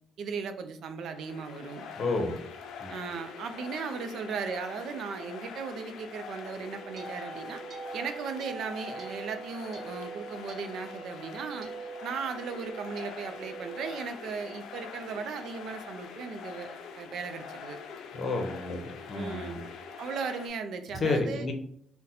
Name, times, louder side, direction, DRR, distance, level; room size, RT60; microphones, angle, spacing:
voice 1, 0.2-1.9 2.9-7.6 7.9-11.7 12.0-17.8 19.1-19.6 20.0-21.5, right 5 dB, 75° right, 8 dB, 0.4 m, -37 dB
sound 1, 1.0-20.5, left 6 dB, 85° left, 0.4 m, -44 dB
voice 2, 2.0-2.3 2.8-2.9 18.1-19.6 20.9-21.5, left 3 dB, 50° left, 4 dB, 0.7 m, -30 dB
sound 2, 6.4-14.8, right 4 dB, 55° right, 0.8 m, -44 dB
2.7 x 2.1 x 3.9 m, 0.66 s
cardioid pair, 95°, 0 cm